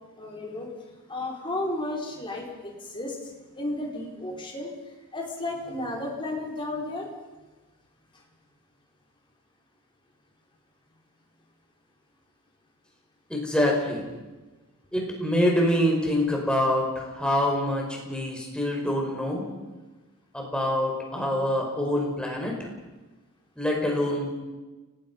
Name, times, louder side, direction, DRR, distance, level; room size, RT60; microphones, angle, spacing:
voice 1, 0.2-0.7 1.1-4.7 5.1-7.1, left 2 dB, 25° left, -2 dB, 4.9 m, -33 dB
voice 2, 13.3-14.0 14.9-19.4 20.3-22.5 23.6-24.3, left 1 dB, 5° left, -1 dB, 5.3 m, -25 dB
29.5 x 19.5 x 5.6 m, 1.2 s
head